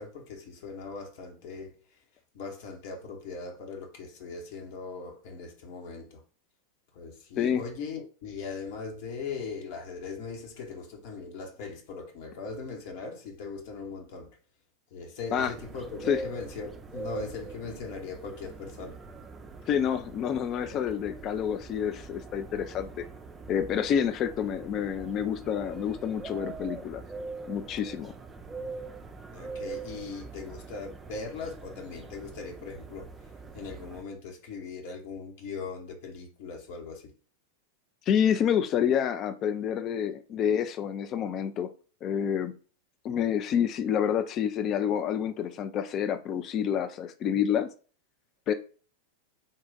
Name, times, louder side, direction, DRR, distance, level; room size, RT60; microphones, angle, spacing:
voice 1, 0.0-1.8 2.3-6.2 6.9-14.4 14.9-19.0 29.3-33.1 33.5-37.1, left 4 dB, 50° left, 1.1 m, -40 dB
sound 1, 15.4-34.0, right 3 dB, 15° right, 0.5 m, -43 dB
voice 2, 19.7-23.0 23.5-27.0 27.5-28.1 38.1-41.7 42.0-42.5 43.0-47.7 48.5-48.6, left 8 dB, 35° left, 0.5 m, -28 dB
3.9 x 2.4 x 3.8 m
figure-of-eight pair, 90°, 0 cm